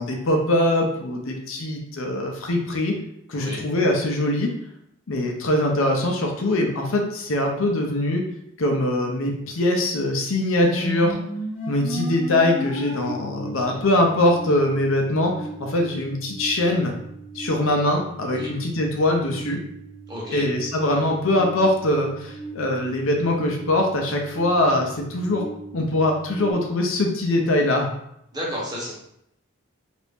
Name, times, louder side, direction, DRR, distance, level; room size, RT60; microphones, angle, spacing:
voice 1, 0.0-2.9 3.3-4.5 5.1-8.2 8.6-11.2 11.7-15.3 15.6-16.9 17.3-19.6 20.3-25.4 25.7-27.9, left 1 dB, 75° left, 1 dB, 0.6 m, -22 dB
sound 1, 10.6-26.5, right 1 dB, 25° left, 0.8 m, -36 dB
voice 2, 20.1-20.4 28.3-28.9, equal, 20° right, -5 dB, 0.9 m, -32 dB
2.8 x 2.6 x 3.4 m, 0.75 s
head